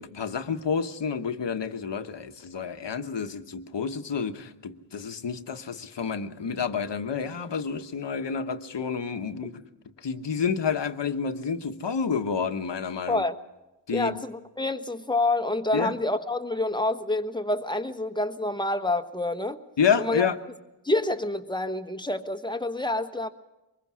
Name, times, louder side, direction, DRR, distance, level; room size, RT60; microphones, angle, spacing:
voice 1, 0.0-9.5 10.0-13.2 13.9-14.2 15.7-15.9 19.8-20.4, left 6 dB, 70° left, 1.3 m, -29 dB
voice 2, 13.1-13.4 13.9-19.6 20.0-20.3 20.8-23.3, left 2 dB, 10° left, 1.3 m, -27 dB
24.0 x 21.5 x 6.2 m
wide cardioid pair, 85°, 44 cm